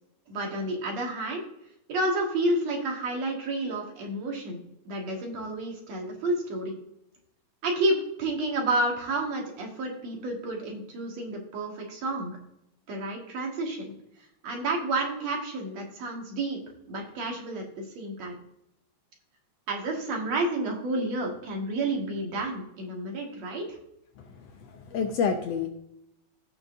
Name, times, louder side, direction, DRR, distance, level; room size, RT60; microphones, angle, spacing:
voice 1, 0.3-1.4 1.9-4.6 4.9-6.7 7.6-12.4 12.9-13.9 14.4-16.6 16.9-17.6 18.0-18.4 19.7-23.8, right 2 dB, 65° right, 0 dB, 2.9 m, -30 dB
voice 2, 24.2-25.7, left 6 dB, 70° left, 5 dB, 1.7 m, -29 dB
17.0 x 5.8 x 2.6 m, 0.80 s
omnidirectional pair, 3.4 m